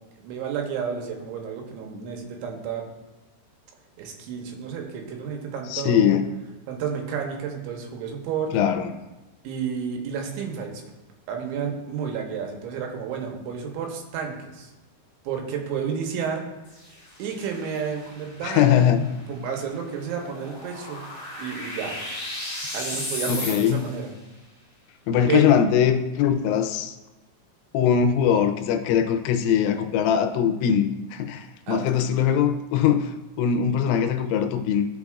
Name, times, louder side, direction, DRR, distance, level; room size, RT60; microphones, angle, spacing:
voice 1, 0.2-2.8 4.0-6.1 6.7-8.5 9.4-10.8 11.3-14.7 15.2-16.5 16.8-16.9 17.2-21.0 21.4-22.0 22.7-24.1 25.3-25.5 31.7-31.9, right 7 dB, 75° right, 2 dB, 3.1 m, -31 dB
voice 2, 5.7-6.2 8.5-8.9 18.4-19.0 23.3-23.9 25.1-27.0 27.7-34.9, left 8 dB, 90° left, 7 dB, 3.2 m, -21 dB
sound 1, 16.6-24.1, left 1 dB, 40° left, 1.5 m, -36 dB
13.5 x 6.4 x 2.4 m, 1.1 s
omnidirectional pair, 5.6 m